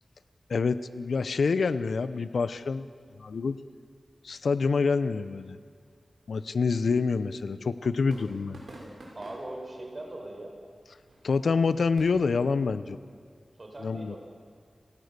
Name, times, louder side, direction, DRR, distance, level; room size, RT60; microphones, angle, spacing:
voice 1, 0.5-2.9 3.2-3.6 4.2-5.6 6.3-8.6 11.2-13.0 13.8-14.2, left 4 dB, 80° left, 14 dB, 0.8 m, -27 dB
sound 1, 5.2-12.3, right 1 dB, 75° right, 6.5 m, -52 dB
voice 2, 8.8-10.5 13.6-14.2, right 1 dB, 35° right, 1 dB, 4.8 m, -41 dB
29.5 x 17.5 x 6.8 m, 2.2 s
wide cardioid pair, 105°, 0 cm